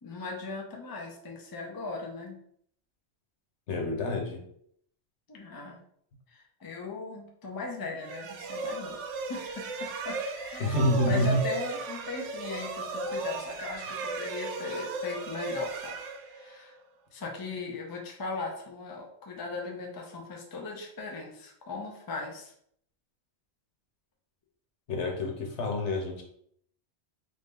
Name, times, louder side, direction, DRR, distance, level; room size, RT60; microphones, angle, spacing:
voice 1, 0.0-2.4 5.3-5.8 6.3-9.0 9.3-16.0 16.3-16.7 17.1-22.5, left 3 dB, 25° left, 0 dB, 0.5 m, -38 dB
voice 2, 3.7-4.4 10.6-11.4 24.9-26.2, left 1 dB, 80° left, 1 dB, 1.2 m, -27 dB
sound 1, 8.0-16.8, right 3 dB, 85° right, 0.9 m, -36 dB
3.7 x 2.7 x 3.7 m, 0.66 s
omnidirectional pair, 1.2 m